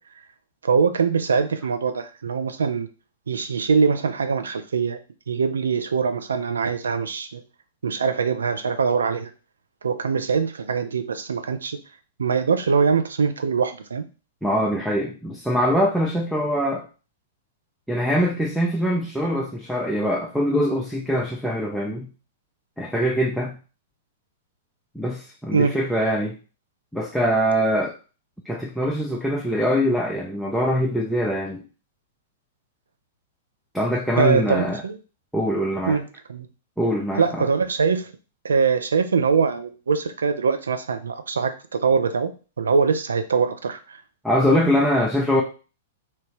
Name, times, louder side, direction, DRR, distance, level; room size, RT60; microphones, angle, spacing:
voice 1, 0.6-2.9 3.3-5.0 5.3-7.4 7.8-9.3 9.8-11.8 12.2-14.0 25.5-25.8 34.2-35.0 35.9-36.5 37.2-38.1 38.4-42.3 42.6-44.0, right 5 dB, 70° right, 9 dB, 0.4 m, -22 dB
voice 2, 14.4-16.9 17.9-22.1 22.8-23.6 24.9-26.4 26.9-27.9 28.5-31.6 33.7-34.8 35.3-36.0 36.8-37.5 44.2-45.4, equal, ahead, 0 dB, 0.4 m, -23 dB
3.2 x 2.9 x 3.0 m, 0.34 s
figure-of-eight pair, 105°, 0 cm